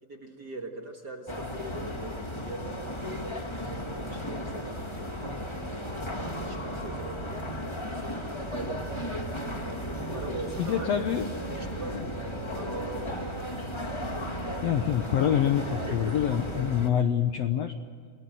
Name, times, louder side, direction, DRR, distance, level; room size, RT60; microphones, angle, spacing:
voice 1, 0.0-3.0 3.4-5.1 5.6-7.4 7.7-9.2 10.1-11.1 11.5-13.3 15.7-16.8, right 3 dB, 40° right, 2 dB, 1.6 m, -42 dB
sound 1, 1.3-16.9, left 1 dB, 15° left, 1.0 m, -35 dB
sound 2, 1.9-16.8, right 9 dB, 70° right, 2.0 m, -45 dB
voice 2, 10.6-11.4 11.8-12.0 14.6-17.7, left 9 dB, 70° left, 7 dB, 1.6 m, -26 dB
28.5 x 18.5 x 7.8 m, 2.2 s
omnidirectional pair, 3.9 m